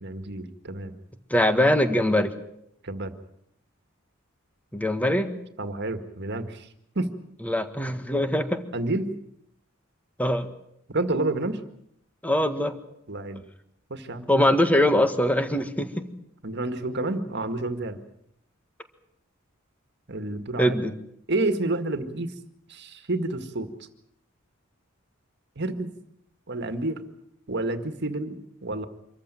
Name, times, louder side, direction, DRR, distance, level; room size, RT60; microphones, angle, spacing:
voice 1, 0.0-0.9 2.8-3.1 5.6-6.7 7.0-7.1 8.7-9.1 10.9-11.6 13.1-13.4 13.9-14.3 16.4-18.0 20.1-20.7 21.3-22.3 22.7-23.7 25.6-25.9 26.5-27.0 27.5-28.3 28.6-28.9, right 2 dB, 55° right, 9 dB, 1.9 m, -29 dB
voice 2, 1.3-2.3 4.7-5.3 7.5-8.6 10.2-10.5 12.2-12.7 14.3-16.1 20.6-20.9, left 1 dB, 10° left, 9 dB, 1.7 m, -22 dB
26.0 x 14.5 x 9.2 m, 0.75 s
head